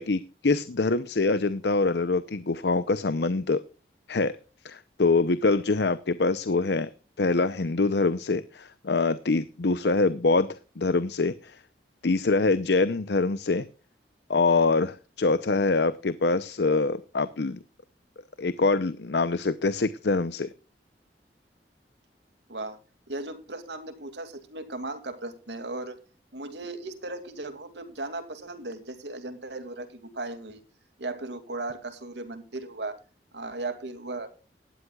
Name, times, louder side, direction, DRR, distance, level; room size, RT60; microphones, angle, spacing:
voice 1, 0.0-3.6 4.1-4.4 4.6-6.9 7.2-11.6 12.0-13.7 14.3-17.6 18.4-20.5, left 3 dB, 75° left, 15 dB, 0.7 m, -24 dB
voice 2, 23.1-26.0 26.3-30.6 31.0-33.0 33.3-34.3, right 2 dB, 80° right, 9 dB, 2.5 m, -36 dB
18.0 x 12.5 x 2.4 m, 0.34 s
head